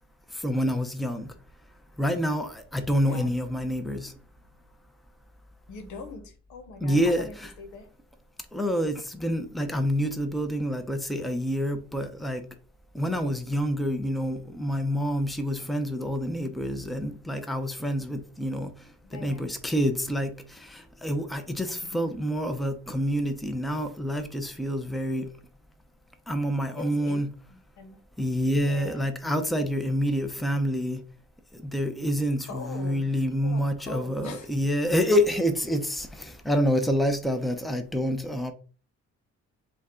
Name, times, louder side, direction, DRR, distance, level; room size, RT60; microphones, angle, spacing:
voice 1, 0.3-1.3 2.0-4.1 6.8-7.3 8.5-12.5 12.9-18.7 19.1-25.3 26.3-27.3 28.2-31.0 31.5-38.5, equal, ahead, 0.7 m, -27 dB
voice 2, 3.0-3.3 5.7-7.9 19.0-19.5 21.9-22.1 26.8-28.0 28.6-29.1 32.4-34.5, left 4 dB, 75° left, 1.1 m, -42 dB
5.2 x 2.3 x 3.8 m
cardioid pair, 90°, 30 cm